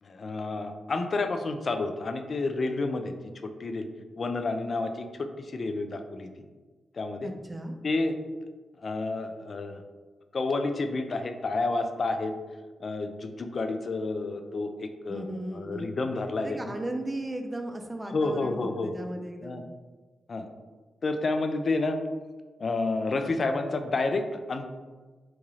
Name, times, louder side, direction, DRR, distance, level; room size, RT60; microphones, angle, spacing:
voice 1, 0.0-3.1 3.4-3.9 4.2-6.3 6.9-7.3 7.8-8.2 8.8-9.8 10.3-12.3 12.8-16.7 18.1-18.9 19.4-19.6 20.3-20.5 21.0-22.0 22.6-24.7, left 3 dB, 55° left, 7 dB, 0.3 m, -30 dB
voice 2, 7.2-7.8 15.1-15.9 16.4-19.6, right 1 dB, 25° right, 4 dB, 0.4 m, -36 dB
2.9 x 2.3 x 3.0 m, 1.3 s
supercardioid pair, 50°, 0 cm